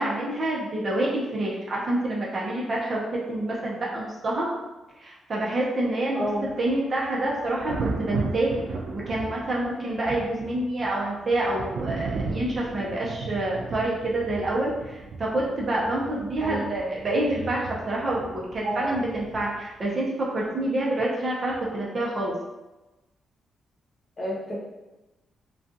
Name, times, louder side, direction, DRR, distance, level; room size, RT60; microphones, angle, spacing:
voice 1, 0.0-4.5 5.0-6.3 6.6-8.5 8.9-22.3, right 1 dB, 40° right, -4 dB, 0.7 m, -27 dB
voice 2, 6.1-6.5 16.4-16.7 18.6-18.8 24.2-24.6, right 1 dB, 40° left, -5 dB, 0.9 m, -29 dB
Thunder, 6.2-19.9 21.5-21.7, right 3 dB, 80° right, 0.3 m, -36 dB
2.4 x 2.3 x 2.6 m, 1.1 s
cardioid pair, 90°, 0 cm